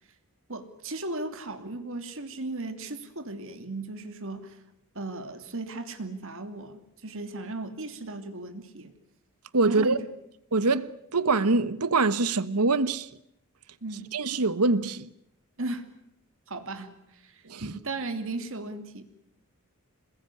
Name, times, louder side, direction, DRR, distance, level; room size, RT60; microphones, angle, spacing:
voice 1, 0.5-4.6 4.9-8.9 9.7-10.1 13.8-14.1 15.6-15.9 16.5-19.0, right 2 dB, 60° right, 2.8 m, -36 dB
voice 2, 9.5-10.0 10.5-13.1 14.1-15.1 17.5-17.7, right 3 dB, 90° right, 1.3 m, -24 dB
28.0 x 21.0 x 9.8 m
head